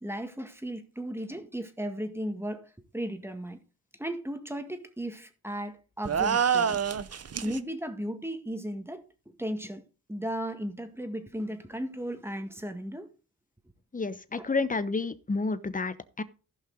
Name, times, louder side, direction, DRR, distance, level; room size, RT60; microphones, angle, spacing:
voice 1, 0.0-3.6 4.0-6.8 7.4-9.8 10.1-13.1 14.4-14.5, equal, 5° right, 1.8 m, -36 dB
sound 1, 6.0-7.6, right 7 dB, 45° right, 0.8 m, -26 dB
voice 2, 13.9-16.2, left 3 dB, 20° left, 0.9 m, -30 dB
15.0 x 5.7 x 3.9 m
cardioid pair, 70°, 36 cm